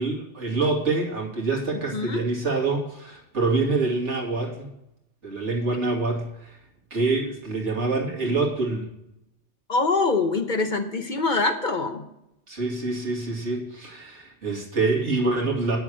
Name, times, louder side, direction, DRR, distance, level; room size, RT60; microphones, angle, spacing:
voice 1, 0.0-4.7 5.2-6.6 6.9-8.9 12.5-15.8, right 3 dB, 75° right, -2 dB, 2.6 m, -26 dB
voice 2, 1.9-2.2 9.7-12.1, left 3 dB, 45° left, 6 dB, 0.9 m, -24 dB
9.5 x 7.0 x 6.3 m, 0.84 s
omnidirectional pair, 1.2 m